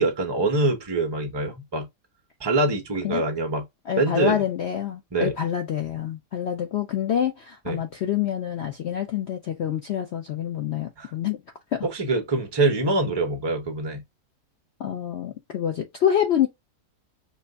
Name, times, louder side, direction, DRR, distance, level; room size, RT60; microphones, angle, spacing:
voice 1, 0.0-1.9 2.4-3.6 4.0-4.4 5.1-5.3 7.7-7.8 11.0-11.1 11.9-14.0, right 2 dB, 20° right, 0.7 m, -24 dB
voice 2, 3.9-11.4 11.7-11.9 14.8-16.5, left 9 dB, 70° left, 0.6 m, -26 dB
4.5 x 2.5 x 2.3 m
omnidirectional pair, 1.7 m